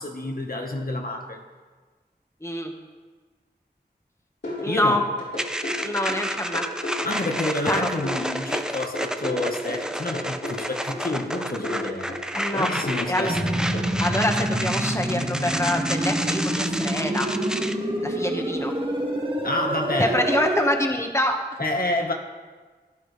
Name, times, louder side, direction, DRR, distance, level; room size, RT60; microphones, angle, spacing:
voice 1, 0.0-1.4 4.6-5.0 7.0-12.1 12.6-13.6 19.4-20.2 21.6-22.1, left 2 dB, 55° left, 2 dB, 1.4 m, -29 dB
voice 2, 2.4-2.7 4.6-5.0 5.8-6.6 7.7-7.9 12.3-13.6 14.0-17.3 18.0-18.7 20.0-21.4, left 1 dB, 15° left, 2 dB, 1.5 m, -26 dB
sound 1, 4.4-13.8, left 1 dB, 90° left, 4.1 m, -34 dB
sound 2, 5.4-17.7, equal, 5° right, 0.7 m, -31 dB
sound 3, 13.3-20.7, right 1 dB, 30° right, 1.9 m, -27 dB
15.5 x 10.5 x 3.3 m, 1.4 s
wide cardioid pair, 45°, 18 cm